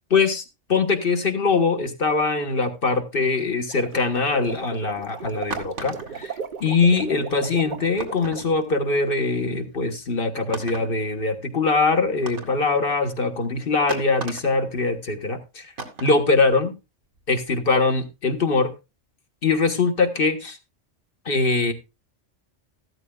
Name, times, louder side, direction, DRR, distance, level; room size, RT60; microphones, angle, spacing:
voice 1, 0.1-0.4 0.7-6.3 6.6-15.7 16.0-16.7 17.3-18.7 19.4-20.6 21.2-21.7, left 4 dB, 50° left, 6 dB, 1.5 m, -22 dB
sound 1, 3.6-8.5, right 5 dB, 45° right, 0.9 m, -36 dB
sound 2, 4.8-5.0 5.5-6.3 6.7-6.8 7.0-7.1 7.3-7.4 7.8-8.7 9.5-9.7 10.5-11.0 11.6-11.7 12.2-12.7 13.4-13.5 13.9-14.6 15.2-15.3 15.8-16.2, right 3 dB, 75° right, 2.2 m, -35 dB
14.5 x 12.5 x 2.3 m, 0.26 s
omnidirectional pair, 1.2 m